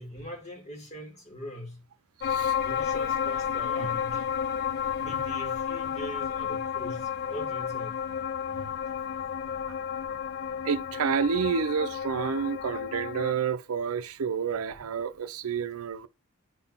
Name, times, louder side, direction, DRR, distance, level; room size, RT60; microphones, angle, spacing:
voice 1, 0.0-1.8 2.6-4.3 5.0-8.0 14.7-14.9, equal, 30° left, 2.3 m, -41 dB
sound 1, 2.2-13.3, left 8 dB, 45° left, 0.3 m, -31 dB
voice 2, 10.6-16.1, right 6 dB, 80° right, 0.5 m, -29 dB
9.2 x 4.0 x 5.5 m
head